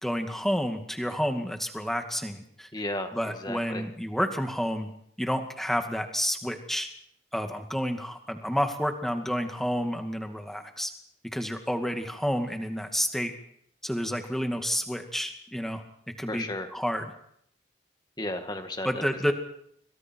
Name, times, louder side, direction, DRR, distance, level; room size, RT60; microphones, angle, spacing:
voice 1, 0.0-2.7 3.1-4.9 5.2-6.9 7.3-10.9 11.3-13.3 13.8-15.8 16.2-17.1 18.8-19.3, equal, ahead, 5 dB, 2.2 m, -30 dB
voice 2, 2.7-3.1 3.4-3.8 16.3-16.7 18.2-19.0, left 1 dB, 20° left, 6 dB, 1.9 m, -33 dB
27.5 x 25.0 x 4.6 m, 0.70 s
head